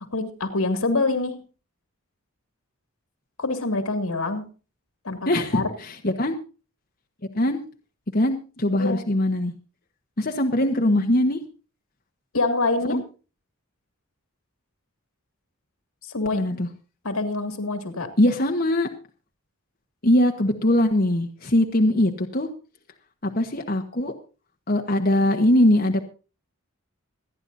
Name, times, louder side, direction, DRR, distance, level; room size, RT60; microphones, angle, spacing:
voice 1, 0.1-1.4 3.4-4.5 5.0-5.7 8.7-9.0 12.3-13.0 16.1-16.4 17.0-18.1, left 3 dB, 80° left, 8 dB, 2.4 m, -25 dB
voice 2, 5.3-6.4 7.3-7.6 8.1-9.5 10.2-11.4 12.9-13.0 16.3-16.7 18.2-18.9 20.0-22.5 23.2-24.1 24.7-26.0, left 1 dB, 45° left, 3 dB, 1.2 m, -21 dB
26.5 x 9.9 x 2.7 m, 0.34 s
head